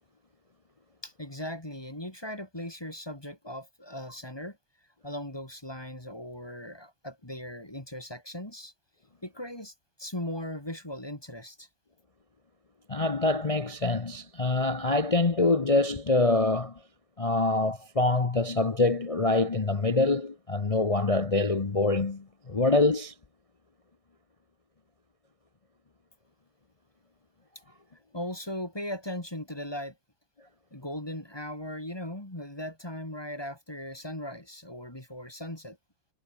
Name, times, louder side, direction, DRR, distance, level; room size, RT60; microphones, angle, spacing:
voice 1, 1.0-4.6 5.0-8.7 9.2-9.7 10.0-11.7 28.1-30.0 30.7-35.8, left 1 dB, 10° left, 2.5 m, -38 dB
voice 2, 12.9-16.8 17.2-23.1, left 2 dB, 60° left, 0.3 m, -25 dB
omnidirectional pair, 2.2 m